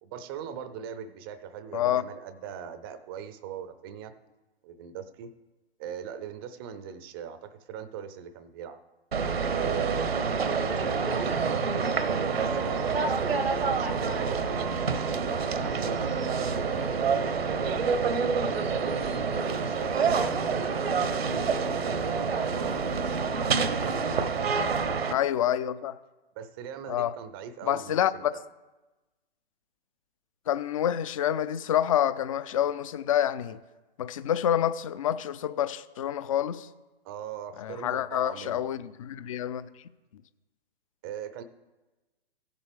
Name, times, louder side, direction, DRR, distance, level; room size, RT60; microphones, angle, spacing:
voice 1, 0.0-4.1 4.6-5.3 5.8-8.8 9.4-10.1 10.5-14.8 15.1-17.4 18.5-23.2 23.7-24.2 26.4-28.4 37.0-38.7 41.0-41.4, right 8 dB, 25° right, 0.5 m, -40 dB
sound 1, 9.1-25.1, right 5 dB, 80° right, 0.9 m, -27 dB
voice 2, 25.1-26.0 26.9-27.1 27.6-28.3 30.5-33.6 34.0-36.7 37.6-39.7, left 10 dB, 35° left, 0.4 m, -27 dB
16.0 x 7.4 x 3.4 m
figure-of-eight pair, 125°, 30 cm